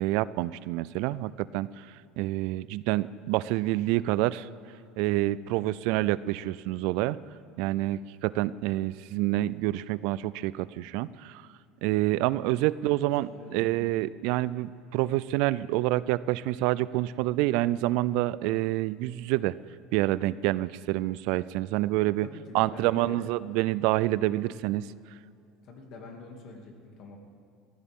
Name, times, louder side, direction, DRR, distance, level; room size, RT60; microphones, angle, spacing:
voice 1, 0.0-1.9 2.2-4.5 5.0-7.2 7.6-11.4 11.8-19.5 19.9-22.3 22.5-24.9, right 17 dB, 70° right, 18 dB, 0.3 m, -27 dB
voice 2, 12.8-13.7 22.2-23.3 25.6-27.2, left 3 dB, 55° left, 2 dB, 2.5 m, -46 dB
20.5 x 15.0 x 3.7 m, 2.5 s
supercardioid pair, 120°, 0 cm